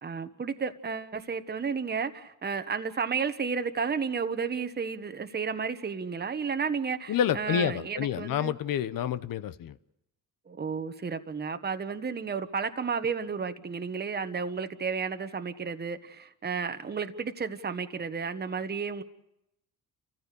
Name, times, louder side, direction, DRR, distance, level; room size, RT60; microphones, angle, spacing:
voice 1, 0.0-8.6 10.5-19.0, right 5 dB, 25° right, 1.2 m, -32 dB
voice 2, 7.1-9.7, left 9 dB, 60° left, 0.9 m, -28 dB
29.5 x 15.0 x 6.8 m
cardioid pair, 100°, 37 cm